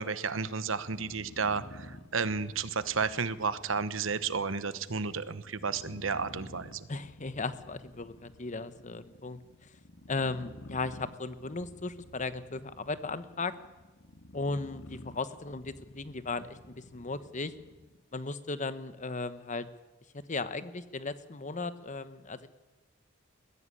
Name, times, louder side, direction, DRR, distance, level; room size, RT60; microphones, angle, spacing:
voice 1, 0.0-6.9, right 5 dB, 75° right, 14 dB, 1.1 m, -32 dB
sound 1, 0.8-18.0, left 1 dB, 70° left, 1.8 m, -51 dB
voice 2, 6.9-9.4 10.1-13.5 14.3-17.5 18.1-19.7 20.3-22.5, left 3 dB, 40° left, 13 dB, 1.1 m, -36 dB
22.0 x 15.5 x 9.9 m, 1.2 s
head